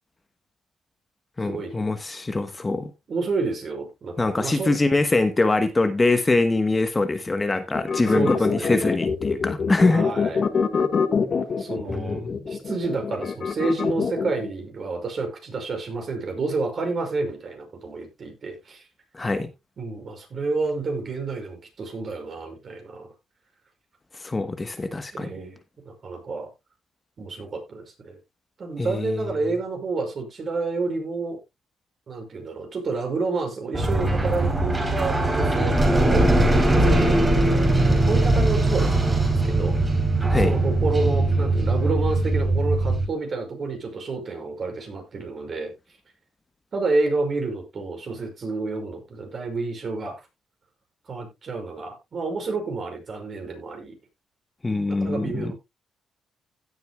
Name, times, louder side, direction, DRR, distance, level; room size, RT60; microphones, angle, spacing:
voice 1, 1.4-2.9 4.2-10.0 11.9-12.4 19.1-19.5 24.2-25.3 28.8-29.2 40.3-40.5 54.6-55.5, left 2 dB, 20° left, 1.2 m, -23 dB
voice 2, 3.1-4.7 8.1-9.0 9.9-10.4 11.6-18.8 19.8-23.1 25.1-25.6 25.9-26.5 27.2-28.2 28.6-31.4 32.1-36.3 36.7-37.2 38.1-39.8 40.2-45.7 46.7-50.2 51.1-53.9 54.9-55.5, right 3 dB, 45° right, 5.8 m, -29 dB
sound 1, 7.7-14.5, left 5 dB, 45° left, 1.5 m, -25 dB
sound 2, 33.7-43.1, right 2 dB, 20° right, 3.6 m, -20 dB
16.5 x 8.0 x 2.3 m
cardioid pair, 90°, 0 cm